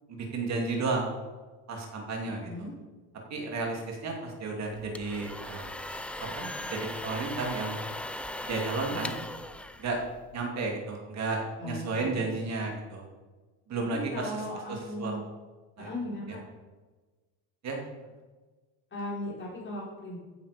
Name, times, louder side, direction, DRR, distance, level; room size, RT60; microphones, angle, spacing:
voice 1, 0.1-1.1 1.7-2.5 3.3-5.7 6.3-6.4 6.7-7.8 8.4-9.1 9.8-10.0 10.3-13.0 13.7-15.1 15.8-15.9 17.6-17.8, right 3 dB, 40° right, 0 dB, 2.6 m, -33 dB
voice 2, 2.2-2.7 6.4-6.8 8.9-9.2 11.6-12.2 13.9-15.2 15.8-16.4 18.9-20.2, left 1 dB, 30° left, -4 dB, 5.3 m, -38 dB
sound 1, 4.7-10.5, left 1 dB, 5° left, 0.4 m, -38 dB
15.5 x 9.5 x 5.2 m, 1.3 s
cardioid pair, 155°, 40 cm